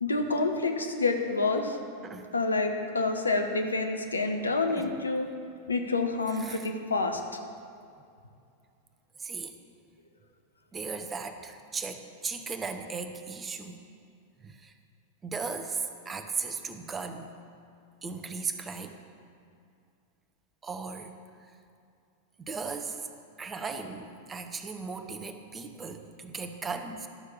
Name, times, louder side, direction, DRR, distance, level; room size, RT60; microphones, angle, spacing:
voice 1, 0.0-1.8 2.3-5.3 5.7-7.2, left 3 dB, 75° left, 5 dB, 1.0 m, -28 dB
voice 2, 2.0-2.3 4.7-5.0 6.3-6.7 9.2-9.6 10.7-13.8 14.4-14.7 15.2-17.3 18.0-19.0 20.6-21.2 22.4-23.0 23.4-27.1, right 4 dB, 20° right, 7 dB, 0.8 m, -37 dB
12.0 x 6.5 x 7.2 m, 2.4 s
figure-of-eight pair, 90°, 0 cm